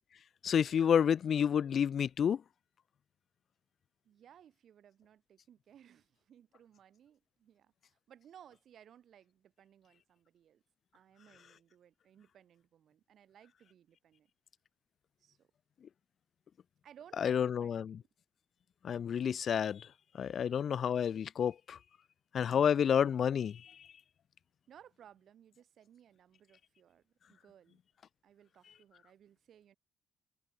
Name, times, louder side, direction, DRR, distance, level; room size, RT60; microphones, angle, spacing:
voice 1, 0.4-2.4 17.2-18.0 18.8-19.9 20.1-21.8 22.3-23.9, left 8 dB, 55° left, 0.3 m, -30 dB
voice 2, 4.0-10.6 10.9-14.3 15.2-15.5 16.8-18.0 24.7-27.8 28.2-29.8, right 9 dB, 65° right, 6.4 m, -60 dB
cardioid pair, 90°, 0 cm